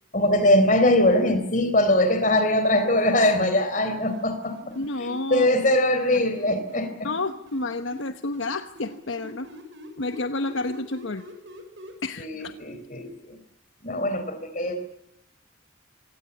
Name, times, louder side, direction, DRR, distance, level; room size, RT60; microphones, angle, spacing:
voice 1, 0.1-4.5 5.0-7.1 12.2-13.4 13.8-14.8, left 1 dB, 40° left, 9 dB, 4.0 m, -22 dB
sound 1, 3.7-5.2 6.0-8.0 8.3-11.9, equal, 70° right, 6.7 m, -44 dB
voice 2, 4.7-5.5 7.0-9.5 10.0-11.2 12.0-12.5, left 2 dB, 75° left, 9 dB, 1.1 m, -30 dB
25.5 x 17.5 x 8.3 m, 0.80 s
head